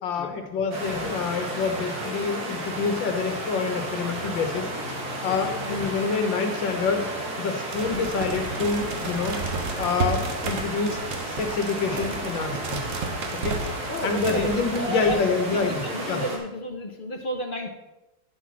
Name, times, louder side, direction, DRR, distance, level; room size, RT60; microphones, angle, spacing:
voice 1, 0.0-7.0 7.4-9.4 9.8-12.8 13.4-13.8 14.0-16.2, left 4 dB, 85° left, 5 dB, 1.9 m, -27 dB
sound 1, 0.7-16.4, right 1 dB, 55° right, 2.3 m, -33 dB
voice 2, 5.3-5.6 13.9-15.2 15.5-17.7, left 1 dB, 40° left, 3 dB, 0.8 m, -32 dB
sound 2, 7.7-14.9, right 4 dB, 80° right, 1.9 m, -33 dB
10.5 x 6.0 x 6.0 m, 0.99 s
omnidirectional pair, 2.0 m